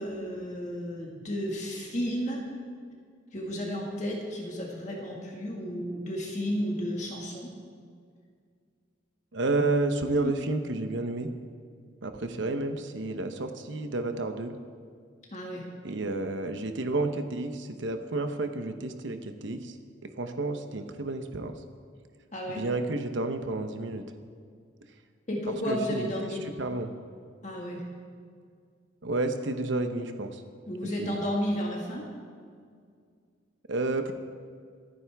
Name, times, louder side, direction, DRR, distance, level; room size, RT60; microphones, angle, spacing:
voice 1, 0.0-2.4 3.3-7.5 10.2-10.3 15.3-15.7 22.3-22.7 25.3-26.4 27.4-27.8 30.7-32.0, equal, 35° left, -2 dB, 1.8 m, -32 dB
voice 2, 9.3-11.3 12.0-14.5 15.8-19.7 20.0-21.5 22.5-24.0 25.7-26.1 26.6-26.9 29.0-30.4 31.0-31.1 33.7-34.1, right 2 dB, 70° right, 7 dB, 0.8 m, -30 dB
26.5 x 9.4 x 3.5 m, 2.1 s
head